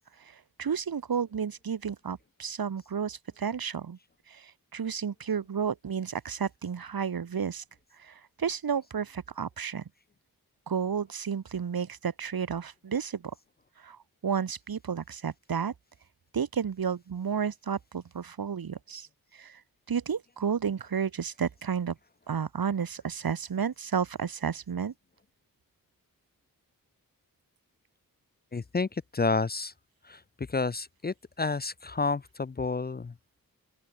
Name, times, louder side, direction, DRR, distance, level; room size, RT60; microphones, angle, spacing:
voice 1, 0.2-4.0 4.3-7.6 8.0-9.8 10.7-13.3 13.8-15.7 16.3-19.1 19.3-19.6 19.9-22.0 22.3-24.9, right 7 dB, 80° right, 3.5 m, -32 dB
voice 2, 28.5-29.7 30.0-33.1, left 4 dB, 25° left, 0.6 m, -30 dB
open air
wide cardioid pair, 130°, 35 cm